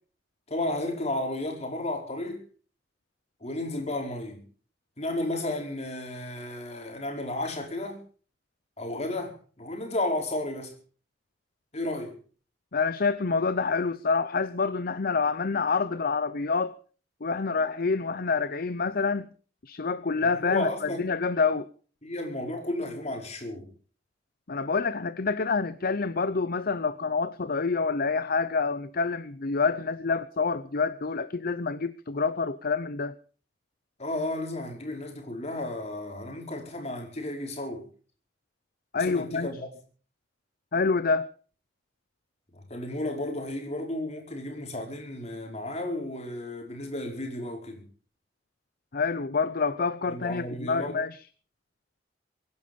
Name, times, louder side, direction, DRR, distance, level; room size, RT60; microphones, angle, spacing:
voice 1, 0.5-2.4 3.4-4.4 5.0-8.0 8.8-10.7 11.7-12.1 20.2-21.0 22.0-23.7 34.0-37.8 39.0-39.7 42.5-47.8 50.1-51.0, left 1 dB, 35° left, 4.9 m, -33 dB
voice 2, 12.7-16.7 17.2-19.3 19.6-21.7 24.5-33.1 38.9-39.5 40.7-41.3 48.9-51.2, left 4 dB, 55° left, 0.7 m, -27 dB
24.5 x 10.5 x 5.3 m
head